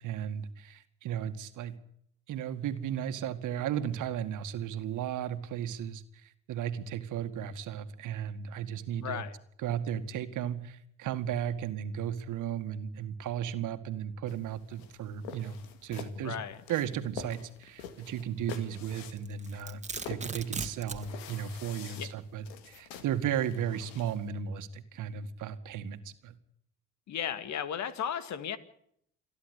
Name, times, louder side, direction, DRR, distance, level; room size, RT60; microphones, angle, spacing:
voice 1, 0.0-1.8 2.3-9.2 9.6-16.4 16.7-19.8 20.1-26.4, right 9 dB, 65° right, 9 dB, 2.1 m, -35 dB
voice 2, 9.0-9.3 16.2-16.6 21.9-22.1 27.1-28.6, left 8 dB, 55° left, 13 dB, 2.0 m, -35 dB
sound 1, 14.3-24.3, left 7 dB, 85° left, 2.1 m, -47 dB
Domestic sounds home sounds, 19.2-21.1, right 4 dB, 20° right, 2.2 m, -38 dB
28.5 x 11.0 x 8.3 m, 0.69 s
hypercardioid pair, 65°, 33 cm